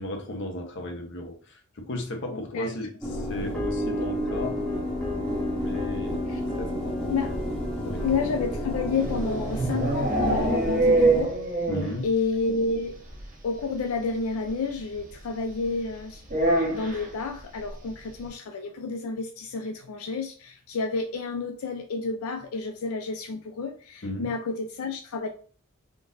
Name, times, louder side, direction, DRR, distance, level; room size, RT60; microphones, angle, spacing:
voice 1, 0.0-4.6 5.5-6.3 6.6-7.0 7.8-8.1 11.7-12.1 24.0-24.3, left 1 dB, 55° left, 0.7 m, -35 dB
voice 2, 2.3-2.7 6.3-6.4 7.1-7.3 8.0-11.7 12.0-13.0 13.4-16.2 16.7-25.3, left 4 dB, 85° left, 0.4 m, -30 dB
sound 1, 3.0-11.2, equal, ahead, 0.9 m, -30 dB
sound 2, 9.0-12.1 12.3-12.4 12.7-12.8 13.1-13.2 14.5-14.6 16.3-17.1, right 2 dB, 40° right, 0.9 m, -24 dB
3.7 x 2.5 x 2.5 m
head